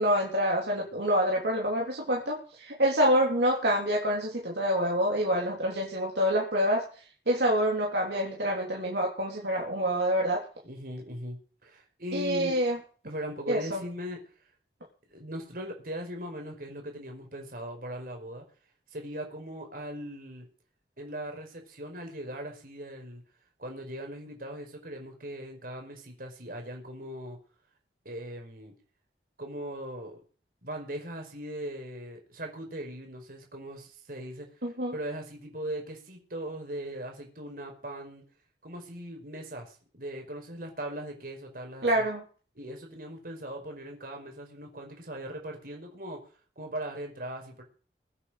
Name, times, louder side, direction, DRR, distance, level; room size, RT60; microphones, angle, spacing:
voice 1, 0.0-6.8 7.3-10.4 12.1-12.8 13.5-13.8 34.6-34.9 41.8-42.2, equal, 70° right, -2 dB, 3.6 m, -27 dB
voice 2, 10.6-12.5 13.0-14.2 15.1-18.4 18.9-20.5 21.0-23.2 23.6-27.4 28.0-28.7 29.4-30.2 30.6-38.2 38.6-42.1 42.5-46.2 46.5-47.6, right 1 dB, 55° right, 3 dB, 5.1 m, -39 dB
23.0 x 8.7 x 5.1 m, 0.40 s
head